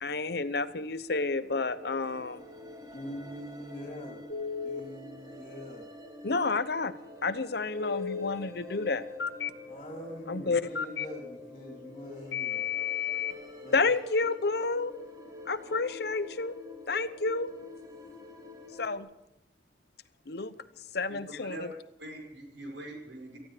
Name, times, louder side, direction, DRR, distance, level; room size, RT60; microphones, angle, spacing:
voice 1, 0.0-2.4 6.2-9.0 10.3-10.6 13.7-14.9 15.5-16.6 16.9-17.5 18.8-19.1 20.3-20.5 20.9-21.7, left 3 dB, 65° left, 12 dB, 0.9 m, -30 dB
sound 1, 1.2-19.0, left 2 dB, 20° right, 2.0 m, -47 dB
voice 2, 2.9-4.2 4.6-5.9 9.7-12.7 13.6-13.8, equal, 35° left, 1 dB, 3.1 m, -43 dB
Telephone, 4.3-4.8 7.8-8.3 9.2-9.5 10.7-11.1 12.3-13.3, left 8 dB, 80° left, 1.4 m, -32 dB
voice 3, 21.1-21.6 22.0-23.4, right 1 dB, 85° right, 1 dB, 5.2 m, -43 dB
18.5 x 14.5 x 5.0 m, 0.87 s
head